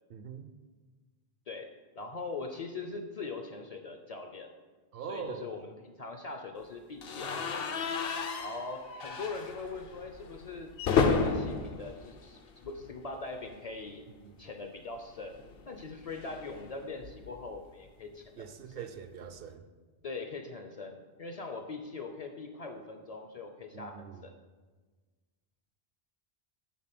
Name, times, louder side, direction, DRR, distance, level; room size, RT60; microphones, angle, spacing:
voice 1, 0.1-0.5 4.9-5.5 14.2-14.3 18.3-19.7 23.7-24.3, right 7 dB, 70° right, 9 dB, 0.7 m, -42 dB
voice 2, 2.0-4.5 5.1-7.8 8.4-10.7 11.1-14.0 14.4-18.4 18.8-18.9 20.0-24.3, left 3 dB, 45° left, 5 dB, 0.6 m, -41 dB
sound 1, 7.0-13.0 13.3-13.5 13.8-13.9 15.2-17.5, left 5 dB, 70° left, 0.9 m, -33 dB
8.4 x 4.0 x 5.9 m, 1.3 s
omnidirectional pair, 1.0 m